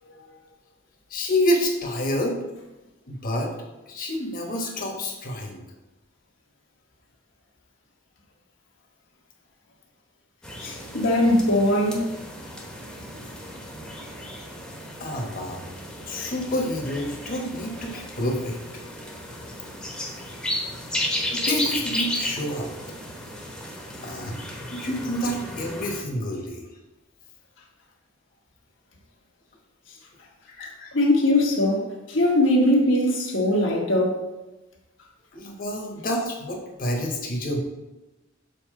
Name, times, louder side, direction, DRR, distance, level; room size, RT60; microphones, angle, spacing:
voice 1, 1.1-2.4 3.1-3.5 3.9-5.6 15.0-15.6 16.0-18.6 21.3-22.7 24.0-24.4 24.7-26.7 30.5-30.9 35.3-37.6, left 1 dB, 45° left, 1 dB, 1.2 m, -28 dB
sound 1, 10.4-26.0, equal, 5° left, 1.0 m, -34 dB
voice 2, 10.6-12.0 30.9-34.2, left 1 dB, 80° left, -2 dB, 1.4 m, -21 dB
7.1 x 4.2 x 3.8 m, 1.1 s
head